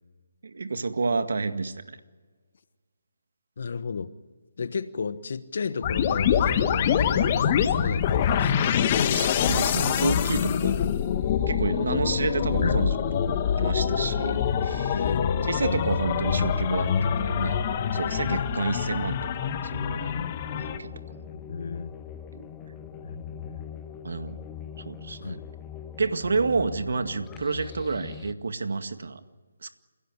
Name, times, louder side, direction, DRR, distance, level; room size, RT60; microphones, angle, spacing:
voice 1, 0.4-2.0 9.1-11.0 11.5-15.0 15.4-17.6 17.9-19.5 19.7-20.2 20.5-20.9 21.2-21.3 22.3-22.4 24.0-24.4 24.8-25.4 26.0-29.2 29.6-29.7, right 4 dB, 65° right, 9 dB, 2.0 m, -30 dB
voice 2, 3.6-4.1 4.6-9.2 12.6-12.9 14.9-15.6 18.3-18.5 21.3-21.9 23.0-23.7 25.2-25.4, left 5 dB, 55° left, 13 dB, 1.2 m, -33 dB
sound 1, 5.8-20.8, left 8 dB, 30° left, 1.6 m, -25 dB
sound 2, 19.7-28.3, left 8 dB, 15° left, 1.1 m, -42 dB
28.5 x 16.5 x 9.8 m, 1.5 s
figure-of-eight pair, 155°, 0 cm